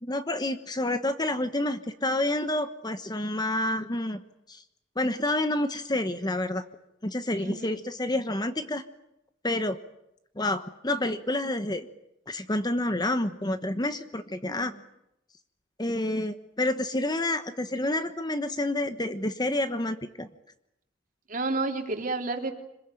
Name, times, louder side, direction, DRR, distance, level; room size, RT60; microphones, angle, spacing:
voice 1, 0.0-4.2 4.5-4.6 5.0-6.6 7.0-8.8 9.4-9.8 10.4-11.9 12.3-14.7 15.8-20.3, left 1 dB, 20° left, 10 dB, 1.1 m, -29 dB
voice 2, 7.4-7.8 14.4-14.7 21.3-22.5, right 3 dB, 45° right, 3 dB, 3.3 m, -31 dB
26.5 x 21.0 x 9.1 m, 0.84 s
head